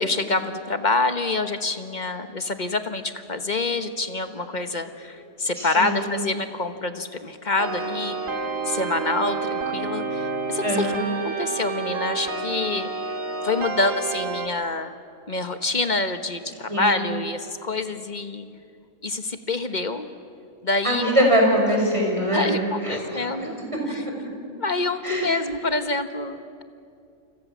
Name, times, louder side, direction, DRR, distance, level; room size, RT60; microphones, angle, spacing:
voice 1, 0.0-10.9 11.2-12.9 13.4-14.9 15.3-18.5 19.0-20.1 20.6-21.3 22.3-23.5 23.9-24.0 24.6-26.6, left 3 dB, 35° left, 8 dB, 1.3 m, -27 dB
voice 2, 5.6-6.0 10.6-11.0 16.7-16.9 20.8-22.6 22.8-23.4 23.9-24.0 25.0-25.3, equal, 20° right, 0 dB, 6.2 m, -22 dB
sound 1, 7.6-14.5, right 4 dB, 65° right, 2.5 m, -29 dB
28.5 x 26.5 x 7.3 m, 2.4 s
omnidirectional pair, 1.5 m